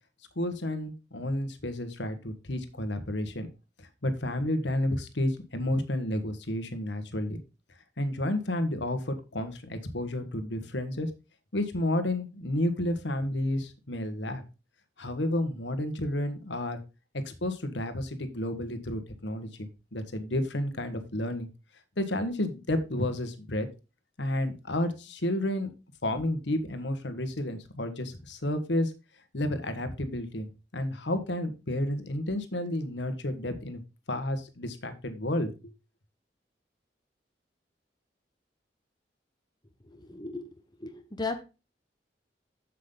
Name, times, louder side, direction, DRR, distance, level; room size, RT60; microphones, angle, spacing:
voice 1, 0.3-3.5 3.8-7.4 8.0-11.1 11.5-14.4 15.0-16.8 17.2-21.5 22.0-23.7 24.2-25.7 26.0-28.9 29.3-33.8 34.1-35.5, left 1 dB, 85° left, 9 dB, 1.5 m, -31 dB
voice 2, 39.9-40.5 40.8-41.4, left 3 dB, 25° left, 7 dB, 1.1 m, -36 dB
7.9 x 7.5 x 3.8 m, 0.29 s
head